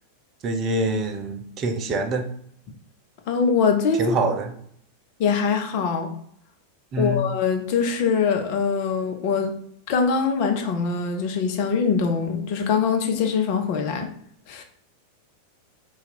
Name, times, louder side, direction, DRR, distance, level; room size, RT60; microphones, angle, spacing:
voice 1, 0.4-2.3 4.0-4.5 6.9-7.3, right 2 dB, 30° right, 5 dB, 0.6 m, -25 dB
voice 2, 3.3-4.2 5.2-6.1 7.0-9.6 9.9-14.1 14.5-14.6, left 5 dB, 45° left, 4 dB, 0.6 m, -23 dB
4.0 x 2.4 x 4.1 m, 0.65 s
figure-of-eight pair, 90°, 0 cm